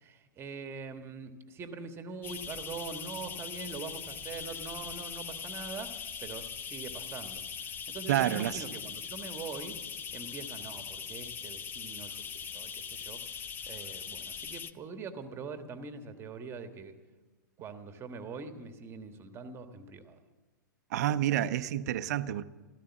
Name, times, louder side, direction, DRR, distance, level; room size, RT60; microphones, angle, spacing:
voice 1, 0.0-9.8 10.1-16.9 17.6-20.2, right 4 dB, 25° right, 1.4 m, -43 dB
sound 1, 2.2-14.7, left 7 dB, 20° left, 0.6 m, -41 dB
voice 2, 8.1-8.6 20.9-22.4, right 12 dB, 55° right, 0.7 m, -29 dB
14.5 x 13.5 x 7.2 m
hypercardioid pair, 115°, 11 cm